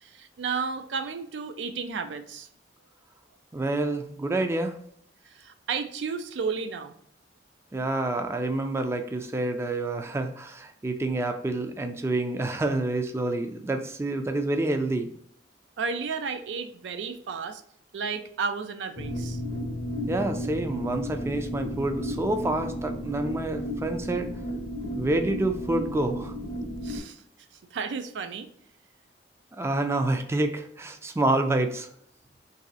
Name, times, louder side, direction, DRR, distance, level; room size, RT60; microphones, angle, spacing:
voice 1, 0.0-2.5 5.3-6.9 15.8-17.6 17.9-19.4 26.8-27.2 27.7-28.5, right 5 dB, 90° right, 8 dB, 0.4 m, -32 dB
voice 2, 3.5-4.8 7.7-15.1 20.1-24.3 24.9-26.3 29.6-31.9, right 2 dB, 15° right, 6 dB, 0.3 m, -28 dB
sound 1, 19.0-27.0, equal, 40° left, 0.5 m, -33 dB
3.1 x 2.7 x 3.9 m, 0.67 s
head